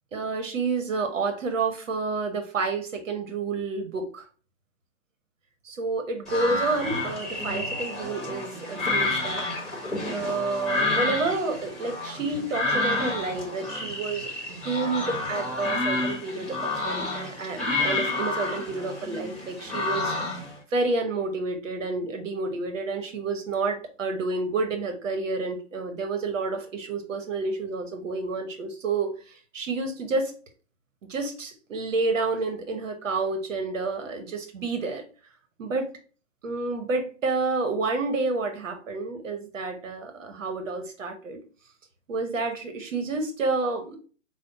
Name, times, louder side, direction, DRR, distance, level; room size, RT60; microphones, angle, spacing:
voice 1, 0.1-4.3 5.6-9.5 10.1-20.1 20.7-30.3 31.1-35.0 35.6-35.9 36.4-41.4 42.1-44.0, right 3 dB, 85° right, 6 dB, 0.9 m, -29 dB
sound 1, 6.3-20.5, left 2 dB, ahead, 1.0 m, -29 dB
5.0 x 2.1 x 3.9 m, 0.39 s
hypercardioid pair, 145°, 37 cm